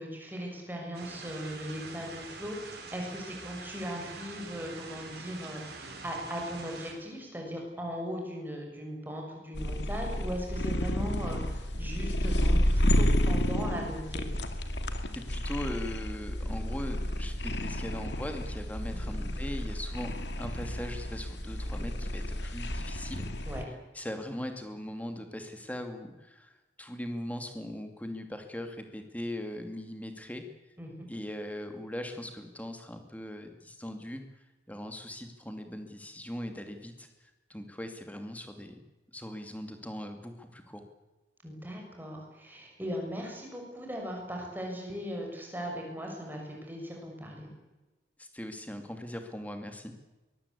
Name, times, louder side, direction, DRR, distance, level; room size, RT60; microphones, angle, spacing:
voice 1, 0.0-14.2 18.9-19.1 23.4-23.6 30.8-31.1 41.4-47.5, equal, 10° right, 0 dB, 6.5 m, -38 dB
sound 1, 0.9-6.9, right 3 dB, 60° right, 5.9 m, -45 dB
sound 2, 9.5-23.6, left 1 dB, 70° left, 2.4 m, -31 dB
voice 2, 15.1-20.1 20.4-23.3 23.6-30.4 31.1-34.2 34.7-38.8 39.1-40.8 48.2-49.9, left 1 dB, 10° left, 6 dB, 2.6 m, -40 dB
24.0 x 22.0 x 8.5 m, 1.1 s
head